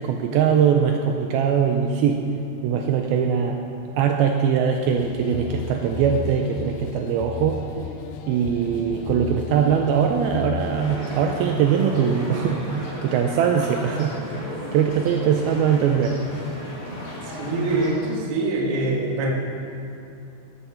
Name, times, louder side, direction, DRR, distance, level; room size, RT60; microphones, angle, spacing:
voice 1, 0.0-2.2 2.6-3.6 4.0-7.6 8.3-14.1 14.7-16.2, right 7 dB, 90° right, 3 dB, 2.2 m, -21 dB
sound 1, 4.9-11.0, left 7 dB, 85° left, 2.2 m, -34 dB
sound 2, 10.7-18.0, equal, 25° left, 2.8 m, -35 dB
voice 2, 17.2-19.3, right 2 dB, 65° right, -1 dB, 1.4 m, -24 dB
13.0 x 9.0 x 5.9 m, 2.8 s
omnidirectional pair, 5.0 m